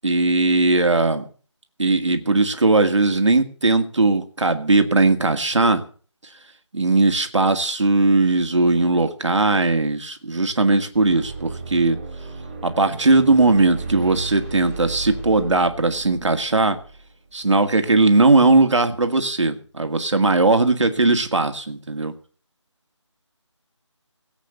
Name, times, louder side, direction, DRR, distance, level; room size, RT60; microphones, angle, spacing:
voice 1, 0.0-1.2 1.8-5.8 6.7-12.0 12.6-16.8 17.3-22.1, right 3 dB, 70° right, 7 dB, 2.0 m, -18 dB
sound 1, 10.9-17.6, right 3 dB, 10° right, 3.3 m, -35 dB
17.0 x 8.2 x 6.7 m, 0.41 s
figure-of-eight pair, 175°, 16 cm